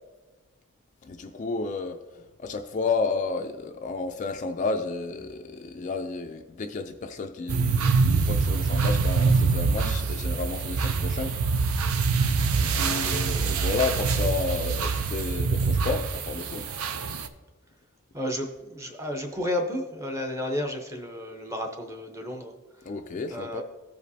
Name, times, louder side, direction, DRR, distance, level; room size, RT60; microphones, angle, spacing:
voice 1, 1.0-11.4 12.5-16.6 22.8-23.6, left 4 dB, 35° left, 5 dB, 0.3 m, -31 dB
sound 1, 7.5-17.3, right 4 dB, 75° right, 0.5 m, -25 dB
voice 2, 18.1-22.9 23.3-23.6, left 1 dB, 15° right, 4 dB, 0.7 m, -32 dB
15.0 x 5.1 x 2.7 m, 1.2 s
head